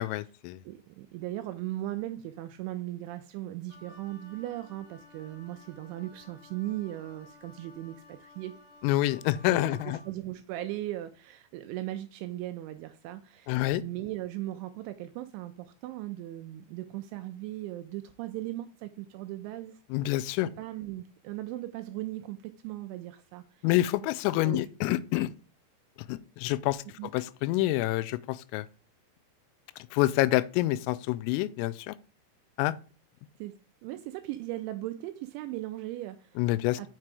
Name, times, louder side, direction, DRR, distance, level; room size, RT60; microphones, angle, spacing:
voice 1, 0.0-0.6 8.8-10.0 13.5-13.8 19.9-20.5 23.6-25.3 26.1-26.8 27.1-28.7 29.9-32.0 32.6-32.7 36.4-36.9, left 16 dB, 85° left, 3.2 m, -27 dB
voice 2, 0.6-8.6 9.5-19.8 20.6-23.7 24.4-24.7 27.0-27.1 33.4-33.5 33.8-36.4 36.8-36.9, right 15 dB, 85° right, 2.7 m, -38 dB
Wind instrument woodwind instrument, 3.7-10.1, left 3 dB, 65° left, 2.4 m, -55 dB
7.5 x 6.1 x 4.7 m
omnidirectional pair, 5.9 m